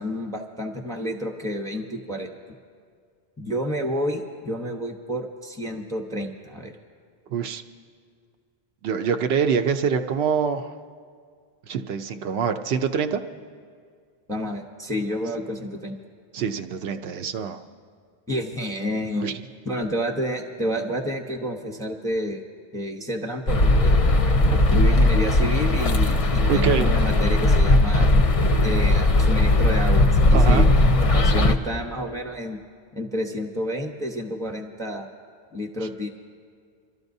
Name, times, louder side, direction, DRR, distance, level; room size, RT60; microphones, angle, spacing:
voice 1, 0.0-2.4 3.4-6.8 14.3-16.0 18.3-19.4 19.6-22.4 22.7-24.0 24.5-28.1 28.6-32.6 32.9-35.1 35.5-36.1, equal, 5° left, 2 dB, 0.7 m, -29 dB
voice 2, 7.3-7.6 8.8-10.7 11.7-13.2 16.3-17.6 19.2-19.3 26.5-26.9 30.3-30.7, right 6 dB, 75° right, 7 dB, 0.8 m, -24 dB
sound 1, 23.5-31.5, left 2 dB, 40° left, 0.5 m, -18 dB
28.5 x 13.0 x 2.7 m, 2.1 s
omnidirectional pair, 1.1 m